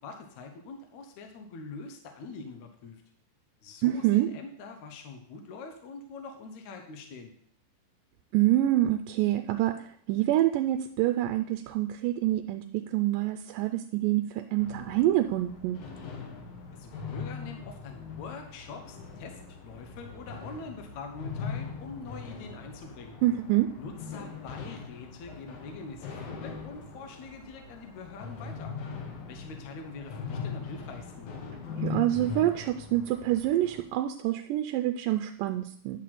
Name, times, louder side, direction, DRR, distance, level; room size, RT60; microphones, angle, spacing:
voice 1, 0.0-3.0 3.6-7.3 16.7-23.2 23.8-28.7 29.3-31.3, left 4 dB, 65° left, 4 dB, 2.2 m, -44 dB
voice 2, 3.8-4.3 8.3-15.8 23.2-23.7 31.8-36.0, right 14 dB, 85° right, 7 dB, 2.2 m, -26 dB
sound 1, 14.6-33.8, left 5 dB, 85° left, 3.3 m, -41 dB
10.5 x 4.2 x 7.5 m, 0.63 s
omnidirectional pair, 3.9 m